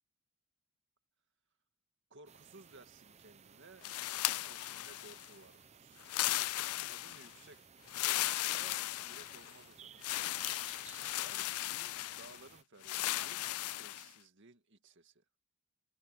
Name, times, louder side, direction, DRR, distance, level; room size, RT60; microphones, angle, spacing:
voice 1, 2.1-3.9 4.2-6.1 6.9-7.6 8.0-10.3 11.1-15.2, right 3 dB, 55° right, 2.1 m, -58 dB
sound 1, 2.3-12.6, right 7 dB, 30° right, 0.7 m, -58 dB
sound 2, 3.8-5.3 6.0-7.3 7.9-9.6 10.0-12.4 12.8-14.1, left 16 dB, 80° left, 0.4 m, -36 dB
head